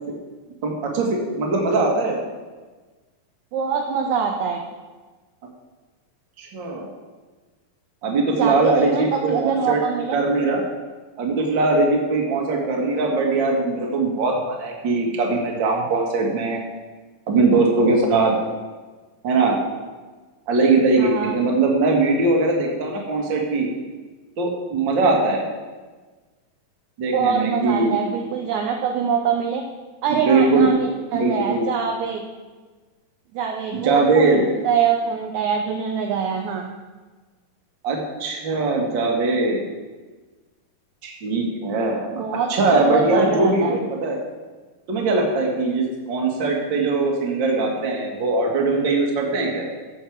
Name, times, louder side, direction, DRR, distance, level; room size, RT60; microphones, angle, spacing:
voice 1, 0.6-2.2 6.4-6.9 8.0-9.8 10.1-10.6 11.2-16.6 17.3-18.3 19.2-19.6 20.5-23.7 24.4-25.4 27.0-28.0 30.1-30.7 31.1-31.7 33.7-34.4 37.8-39.6 41.0-42.2 42.5-44.2 44.9-49.7, right 3 dB, 40° right, 0 dB, 1.9 m, -21 dB
voice 2, 3.5-4.6 8.4-10.2 21.0-21.4 27.1-29.6 30.0-32.2 33.3-36.7 42.1-43.8, right 7 dB, 70° right, 2 dB, 1.9 m, -24 dB
15.0 x 6.6 x 4.7 m, 1.3 s
omnidirectional pair, 3.9 m